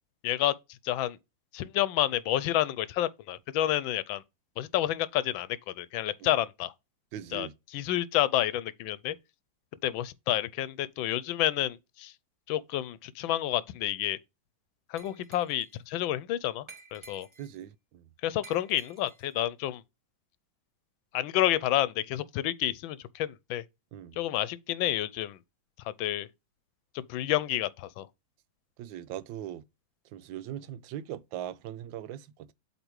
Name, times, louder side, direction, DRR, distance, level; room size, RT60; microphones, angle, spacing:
voice 1, 0.2-0.5 0.8-1.2 1.5-4.2 4.6-6.7 7.3-9.1 9.8-12.1 12.5-14.2 14.9-16.7 16.9-17.3 18.2-19.8 21.1-23.6 24.2-25.4 26.0-26.3 26.9-28.1, left 13 dB, 90° left, 1.4 m, -29 dB
voice 2, 7.1-7.5 17.4-18.1 23.9-24.2 28.8-29.6 30.1-32.5, right 11 dB, 80° right, 1.3 m, -40 dB
Glass, 15.0-15.8 16.7-17.6 18.4-19.3, right 3 dB, 25° right, 0.6 m, -52 dB
8.2 x 3.3 x 4.6 m
omnidirectional pair, 2.1 m